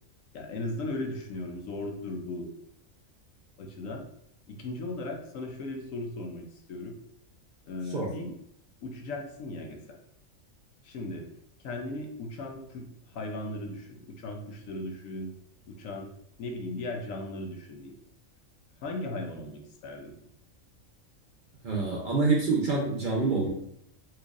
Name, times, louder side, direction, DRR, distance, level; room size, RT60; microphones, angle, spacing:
voice 1, 0.3-2.5 3.6-4.0 4.5-7.0 7.7-8.4 8.8-10.0 10.8-11.2 11.6-15.3 15.7-16.1 16.4-17.9 18.8-20.2, left 2 dB, 75° left, 2 dB, 1.0 m, -37 dB
voice 2, 21.6-23.5, right 4 dB, 50° right, -2 dB, 0.7 m, -26 dB
4.3 x 2.6 x 2.5 m, 0.73 s
omnidirectional pair, 1.4 m